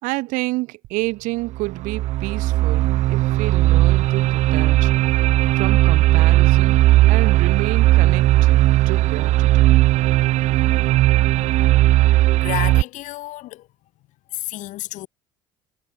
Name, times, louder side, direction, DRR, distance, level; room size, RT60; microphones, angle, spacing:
voice 1, 0.0-4.9 5.5-6.8 7.1-8.6 8.8-9.8, right 23 dB, 75° right, 6.7 m, -29 dB
sound 1, 0.8-0.9 1.5-12.8, right 16 dB, 60° right, 0.5 m, -17 dB
voice 2, 12.3-13.7 14.3-15.1, left 17 dB, 70° left, 5.7 m, -31 dB
supercardioid pair, 75°, 13 cm